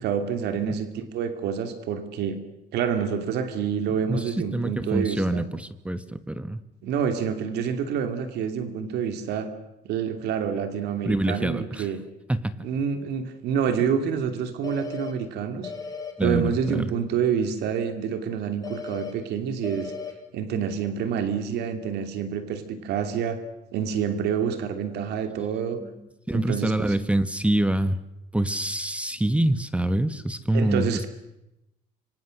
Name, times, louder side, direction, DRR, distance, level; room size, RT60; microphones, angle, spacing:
voice 1, 0.0-2.4 2.7-5.4 6.8-9.5 9.8-12.0 12.6-15.7 16.2-19.9 20.3-23.4 23.7-25.8 26.3-27.0 30.5-31.1, right 7 dB, 80° right, 8 dB, 2.7 m, -27 dB
voice 2, 4.1-6.6 11.1-11.9 12.3-12.6 16.2-16.9 26.3-28.0 28.3-31.1, right 1 dB, 5° right, 12 dB, 1.1 m, -25 dB
sound 1, 14.6-15.1 15.6-16.1 18.6-19.1 19.6-20.1, left 5 dB, 20° left, 4.7 m, -35 dB
26.5 x 24.5 x 6.6 m, 0.91 s
cardioid pair, 110°, 17 cm